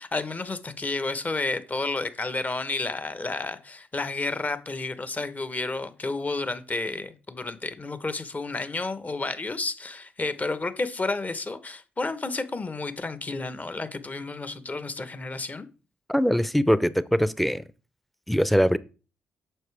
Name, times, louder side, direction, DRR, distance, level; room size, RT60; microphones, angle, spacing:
voice 1, 0.0-15.7, left 3 dB, 30° left, 1.1 m, -31 dB
voice 2, 16.1-17.6 18.3-18.8, equal, ahead, 0.7 m, -22 dB
9.1 x 6.7 x 3.4 m
hypercardioid pair, 45°, 5 cm